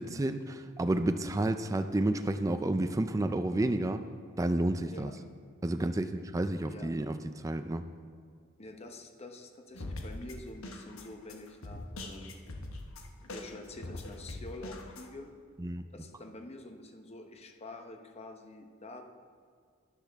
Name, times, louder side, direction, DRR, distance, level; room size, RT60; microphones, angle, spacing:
voice 1, 0.0-4.0 4.4-5.1 5.6-7.2 7.4-7.8 15.6-15.8, right 1 dB, 15° right, 8 dB, 0.3 m, -30 dB
voice 2, 8.6-12.4 13.2-15.3 15.9-19.0, left 2 dB, 30° left, 4 dB, 0.9 m, -47 dB
sound 1, 9.7-15.1, left 2 dB, 80° left, 1.1 m, -43 dB
12.0 x 10.0 x 3.5 m, 2.1 s
head